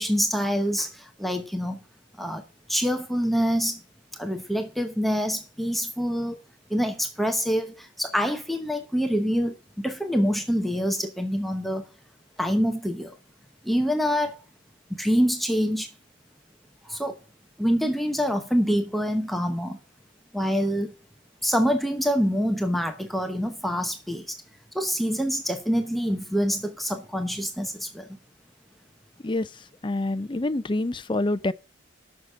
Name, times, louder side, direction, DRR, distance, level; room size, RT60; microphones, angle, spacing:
voice 1, 0.0-1.8 2.2-2.4 2.7-3.8 4.1-6.4 6.7-11.9 12.4-13.2 13.6-14.4 14.9-15.9 16.8-17.2 17.6-19.8 20.3-20.9 21.4-24.4 24.7-28.1, equal, ahead, 0.8 m, -26 dB
voice 2, 29.8-31.5, left 2 dB, 25° left, 0.5 m, -26 dB
9.4 x 6.5 x 6.6 m
head